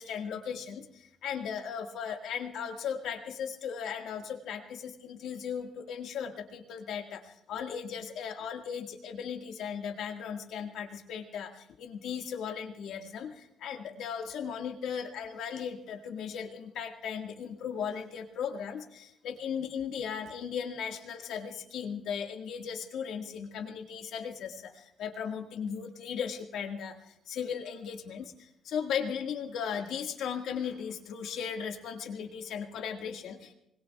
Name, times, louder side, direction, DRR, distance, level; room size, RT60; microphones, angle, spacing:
voice 1, 0.0-33.5, left 7 dB, 80° left, 4 dB, 1.8 m, -37 dB
25.0 x 20.5 x 2.3 m, 0.80 s
cardioid pair, 90°, 0 cm